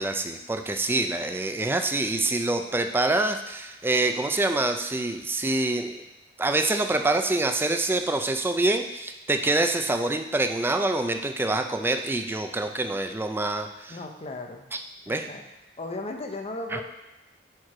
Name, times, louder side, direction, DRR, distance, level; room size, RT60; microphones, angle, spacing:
voice 1, 0.0-6.0 6.4-14.0 15.1-15.3 16.7-16.8, right 2 dB, 10° right, 6 dB, 0.3 m, -26 dB
voice 2, 13.9-14.6 15.0-15.4 15.8-16.8, left 2 dB, 35° left, 3 dB, 0.6 m, -36 dB
4.5 x 4.5 x 4.8 m, 1.0 s
head